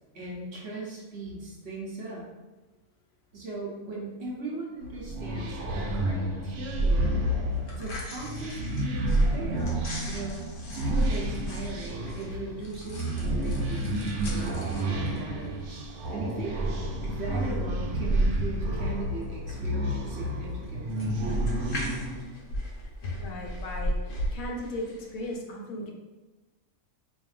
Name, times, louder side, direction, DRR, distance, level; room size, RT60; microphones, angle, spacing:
voice 1, 0.1-2.3 3.3-7.3 7.7-15.8 16.1-16.6 17.0-21.2, right 2 dB, 50° right, -4 dB, 1.1 m, -39 dB
sound 1, 4.8-22.3, right 1 dB, 90° right, 1.1 m, -29 dB
sound 2, 7.5-25.3, equal, 90° left, 1.3 m, -40 dB
voice 2, 23.0-23.9 24.3-25.9, left 1 dB, 70° left, 0 dB, 1.1 m, -36 dB
5.0 x 2.6 x 2.4 m, 1.2 s
omnidirectional pair, 1.5 m